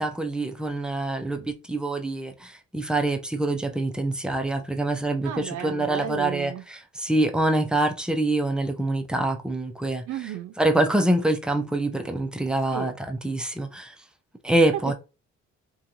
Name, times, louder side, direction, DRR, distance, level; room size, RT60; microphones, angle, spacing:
voice 1, 0.0-10.0 10.6-13.9 14.4-14.9, right 1 dB, 5° right, 0.4 m, -25 dB
voice 2, 5.2-6.6 10.1-10.5 12.7-12.9, right 11 dB, 75° right, 0.7 m, -33 dB
2.8 x 2.3 x 2.6 m
cardioid pair, 90°, 30 cm